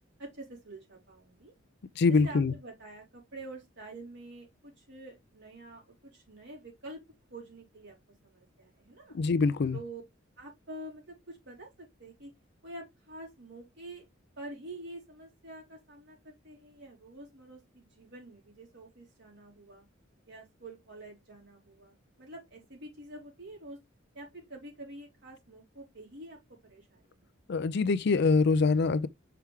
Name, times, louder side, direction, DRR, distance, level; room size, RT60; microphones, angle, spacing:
voice 1, 0.2-1.5 2.1-7.0 7.3-8.0 8.2-9.2 9.7-10.0 10.4-12.3 12.6-14.0 14.4-19.8 20.3-23.8 24.1-27.2, right 2 dB, 60° right, 4.1 m, -47 dB
voice 2, 2.0-2.5 9.1-9.8 27.5-29.1, left 4 dB, 55° left, 0.4 m, -24 dB
5.8 x 4.6 x 3.6 m
head